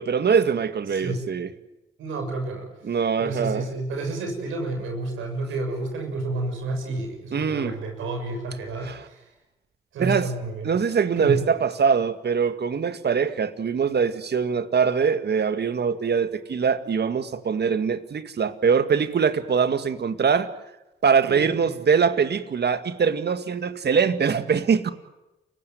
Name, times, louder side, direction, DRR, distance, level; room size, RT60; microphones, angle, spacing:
voice 1, 0.0-1.5 2.8-3.7 7.3-7.8 8.8-9.0 10.0-10.3 10.6-20.5 21.0-24.9, right 6 dB, 55° right, 11 dB, 2.0 m, -23 dB
voice 2, 2.0-2.7 3.2-9.2 9.9-10.7 11.2-11.4 21.3-21.4, right 2 dB, 85° right, 4 dB, 6.6 m, -30 dB
29.0 x 16.5 x 9.4 m, 0.99 s
supercardioid pair, 45°, 20 cm